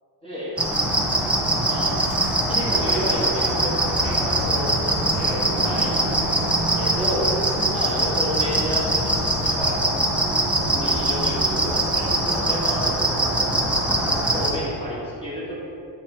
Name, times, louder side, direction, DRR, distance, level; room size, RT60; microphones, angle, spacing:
voice 1, 0.2-0.6 1.7-1.9 2.4-3.7 4.0-6.0 6.3-6.5 6.8-9.8 10.6-12.9 14.3-15.5, equal, 15° left, -8 dB, 1.5 m, -31 dB
sound 1, 0.6-14.5, right 1 dB, 5° right, 0.4 m, -22 dB
8.0 x 2.9 x 4.3 m, 2.7 s
cardioid pair, 125°, 40 cm